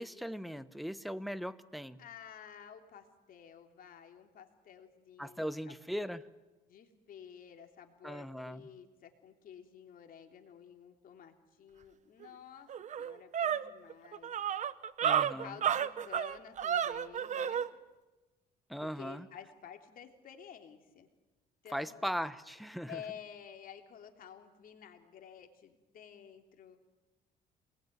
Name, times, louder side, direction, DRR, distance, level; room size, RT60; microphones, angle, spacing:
voice 1, 0.0-2.0 5.2-6.2 8.0-8.6 15.0-15.5 18.7-19.3 21.7-23.0, equal, ahead, 13 dB, 1.1 m, -39 dB
voice 2, 2.0-5.8 6.7-12.7 13.0-14.3 15.2-17.6 18.8-21.1 21.6-22.0 22.9-26.8, left 8 dB, 55° left, 5 dB, 3.2 m, -52 dB
sound 1, 12.2-12.3 12.7-17.7, right 9 dB, 45° right, 1.0 m, -32 dB
27.5 x 20.5 x 9.4 m, 1.1 s
cardioid pair, 110°, 17 cm